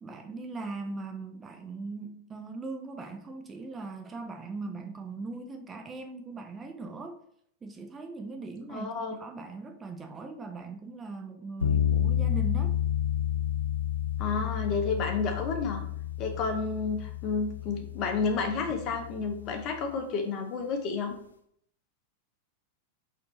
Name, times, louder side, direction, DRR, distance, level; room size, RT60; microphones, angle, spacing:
voice 1, 0.0-7.2 7.6-8.9 9.2-12.8, right 3 dB, 20° right, 5 dB, 0.4 m, -40 dB
voice 2, 8.7-9.2 14.2-15.8 16.2-21.1, left 4 dB, 35° left, 4 dB, 0.8 m, -31 dB
sound 1, 11.6-19.8, left 10 dB, 75° left, 0.4 m, -30 dB
4.2 x 2.8 x 4.0 m, 0.69 s
figure-of-eight pair, 90°, 0 cm